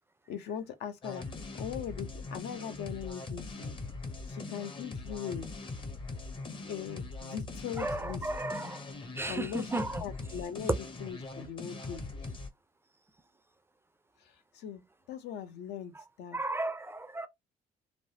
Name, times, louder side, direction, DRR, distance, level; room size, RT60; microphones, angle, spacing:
voice 1, 0.3-1.3 1.5-3.8 4.3-5.5 6.7-8.3 9.3-9.7 10.0-12.1 14.2-14.8 15.1-16.4, left 8 dB, 75° left, 0.7 m, -40 dB
sound 1, 1.0-12.5, left 3 dB, 30° left, 0.7 m, -41 dB
voice 2, 7.8-8.8 9.2-10.0 16.3-17.3, right 2 dB, 15° right, 0.3 m, -34 dB
3.2 x 2.0 x 2.7 m
cardioid pair, 110°, 17 cm